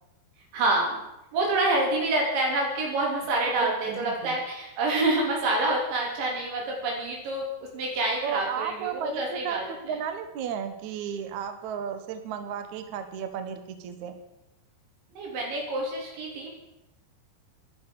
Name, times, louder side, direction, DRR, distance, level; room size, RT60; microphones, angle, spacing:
voice 1, 0.5-1.0 1.3-7.5 7.7-10.0 15.1-16.5, right 2 dB, 85° right, -1 dB, 6.2 m, -27 dB
voice 2, 3.6-4.4 8.2-14.2, right 8 dB, 70° right, 8 dB, 1.8 m, -34 dB
13.0 x 11.5 x 6.7 m, 0.94 s
omnidirectional pair, 5.1 m